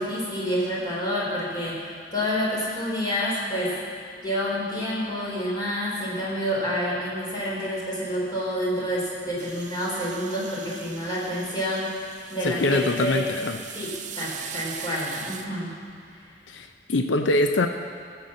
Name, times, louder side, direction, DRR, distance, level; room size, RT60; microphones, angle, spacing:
voice 1, 0.0-1.8 2.1-3.7 4.2-11.9 12.3-13.2 13.7-15.7, equal, 25° left, -5 dB, 3.7 m, -28 dB
sound 1, 9.4-15.5, right 7 dB, 40° right, 0.8 m, -40 dB
voice 2, 12.4-13.6 16.5-17.7, left 2 dB, 80° left, 6 dB, 0.6 m, -23 dB
14.5 x 7.0 x 7.7 m, 2.3 s
head